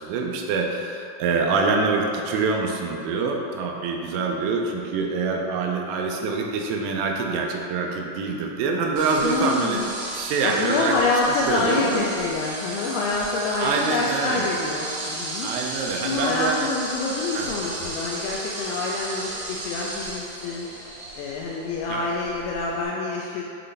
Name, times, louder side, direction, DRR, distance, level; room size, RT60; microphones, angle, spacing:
voice 1, 0.0-9.8 10.1-11.0 11.5-12.1 13.6-14.5 15.4-16.7 17.3-17.5 21.9-22.1, right 4 dB, 85° right, 1 dB, 3.1 m, -25 dB
sound 1, 9.0-22.8, right 2 dB, 65° right, 2.4 m, -35 dB
voice 2, 9.2-9.9 10.4-15.5 16.0-20.7 21.2-23.4, left 3 dB, 90° left, -3 dB, 2.5 m, -26 dB
7.9 x 3.3 x 3.9 m, 2.6 s
omnidirectional pair, 5.7 m